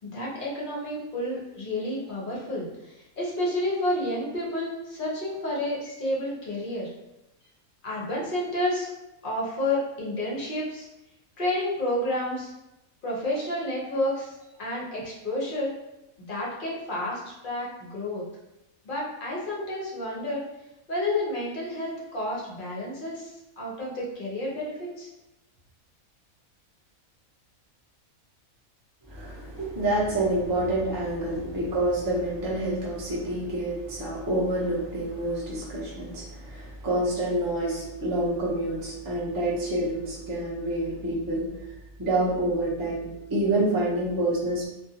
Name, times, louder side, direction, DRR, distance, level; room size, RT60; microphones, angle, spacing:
voice 1, 0.0-6.9 7.8-8.9 9.2-10.9 11.4-12.5 13.0-15.7 16.2-18.2 18.8-20.4 20.9-25.1, left 1 dB, 50° left, -5 dB, 0.7 m, -30 dB
voice 2, 29.1-41.5 42.0-44.7, right 1 dB, 30° right, -6 dB, 0.3 m, -27 dB
2.5 x 2.3 x 2.7 m, 0.93 s
omnidirectional pair, 1.5 m